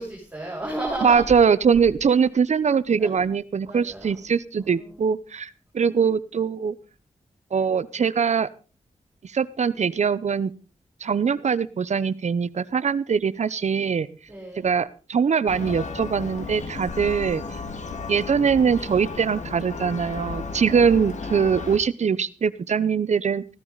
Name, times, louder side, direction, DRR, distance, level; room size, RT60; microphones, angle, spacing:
voice 1, 0.0-1.2 3.0-3.2 3.6-4.3 4.6-5.0 14.3-14.7 20.6-20.9, right 2 dB, 10° right, -5 dB, 7.3 m, -34 dB
voice 2, 1.0-6.7 7.5-8.5 9.2-10.5 11.0-14.1 14.6-17.4 18.1-23.4, right 6 dB, 60° right, 17 dB, 0.8 m, -22 dB
Church bell, 15.5-21.8, left 4 dB, 65° left, 2.2 m, -34 dB
15.0 x 14.5 x 4.0 m, 0.36 s
wide cardioid pair, 80°, 13 cm